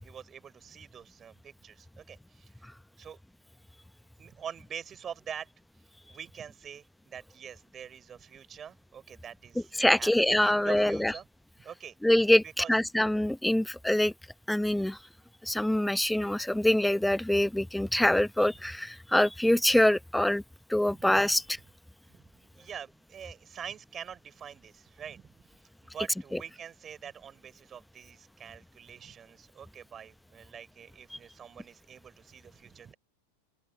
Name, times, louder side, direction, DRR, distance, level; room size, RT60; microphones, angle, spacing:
voice 1, 0.0-2.7 3.0-3.2 4.2-5.5 6.1-11.3 11.6-12.0 12.4-12.7 20.9-21.7 22.1-32.9, right 8 dB, 25° right, 4.9 m, -45 dB
voice 2, 9.8-11.1 12.0-14.1 14.5-15.0 15.4-20.4 20.7-21.4, left 1 dB, 5° left, 0.9 m, -24 dB
open air
figure-of-eight pair, 90°, 0 cm